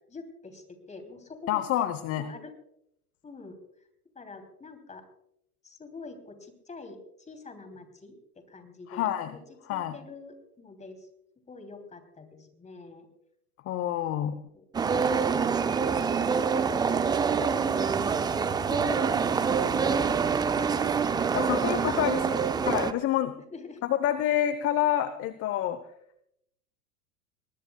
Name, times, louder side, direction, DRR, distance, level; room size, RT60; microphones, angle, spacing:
voice 1, 0.1-1.8 2.2-2.5 3.2-3.6 4.1-5.0 5.6-7.0 7.3-9.4 9.7-11.1 11.5-13.1 14.5-15.4 15.7-17.9 18.3-20.7 20.9-22.2 23.5-23.8, left 4 dB, 15° left, 7 dB, 3.1 m, -45 dB
voice 2, 1.5-2.2 8.9-9.4 9.7-10.0 13.7-14.4 21.3-23.3 23.8-25.8, left 12 dB, 30° left, 12 dB, 1.0 m, -28 dB
sound 1, 14.7-22.9, right 6 dB, 10° right, 0.5 m, -26 dB
22.0 x 20.0 x 2.3 m, 0.75 s
hypercardioid pair, 95°, 46 cm